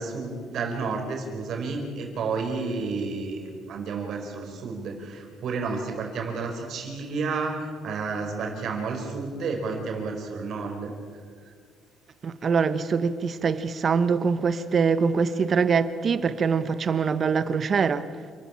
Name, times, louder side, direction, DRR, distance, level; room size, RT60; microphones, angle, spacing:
voice 1, 0.0-10.9, right 4 dB, 50° right, 4.7 m, -31 dB
voice 2, 12.2-18.0, right 5 dB, 35° right, 1.0 m, -24 dB
28.5 x 13.5 x 8.7 m
cardioid pair, 165°, 0 cm